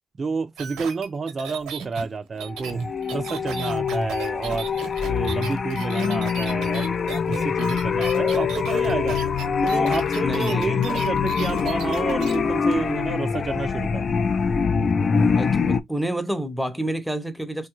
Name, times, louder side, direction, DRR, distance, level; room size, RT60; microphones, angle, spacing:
voice 1, 0.2-2.8 3.1-4.7 5.1-9.2 9.6-14.1, right 4 dB, 35° right, 0.4 m, -29 dB
sound 1, 0.6-12.4 12.7-12.8, right 7 dB, 90° right, 0.9 m, -36 dB
sound 2, 2.5-15.8, left 6 dB, 45° left, 0.4 m, -24 dB
voice 2, 10.2-10.8 15.4-17.7, right 1 dB, ahead, 0.7 m, -28 dB
3.0 x 2.3 x 3.0 m
cardioid pair, 90°, 0 cm